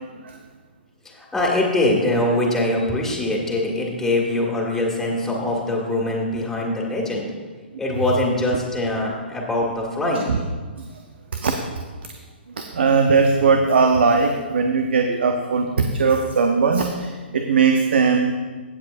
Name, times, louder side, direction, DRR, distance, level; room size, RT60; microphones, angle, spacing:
voice 1, 1.0-7.4 7.8-10.3, left 1 dB, 5° left, -3 dB, 1.9 m, -23 dB
voice 2, 12.7-18.3, right 5 dB, 70° right, 5 dB, 0.8 m, -19 dB
16.0 x 7.4 x 2.6 m, 1.4 s
hypercardioid pair, 125°, 6 cm